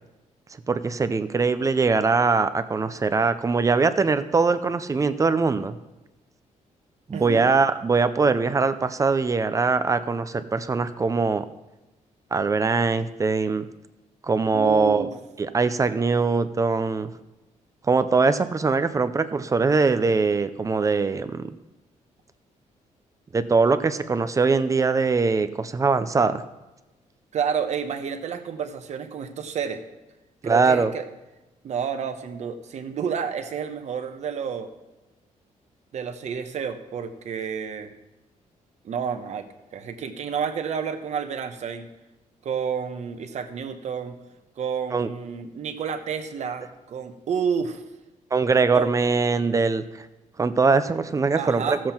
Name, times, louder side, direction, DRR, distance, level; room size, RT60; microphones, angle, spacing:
voice 1, 0.7-5.8 7.1-11.4 12.3-13.6 14.2-15.1 15.4-17.1 17.9-21.5 23.3-26.4 30.4-30.9 44.9-45.1 48.3-49.8 50.4-51.8, right 4 dB, 25° right, 12 dB, 0.5 m, -22 dB
voice 2, 7.1-7.5 14.5-15.1 27.3-29.8 30.4-31.0 31.6-34.7 35.9-37.9 38.8-39.5 39.7-41.9 42.4-44.2 44.6-47.8 48.7-48.9 51.3-51.8, right 7 dB, 60° right, 7 dB, 1.0 m, -30 dB
14.5 x 7.6 x 4.4 m, 1.0 s
cardioid pair, 135°, 13 cm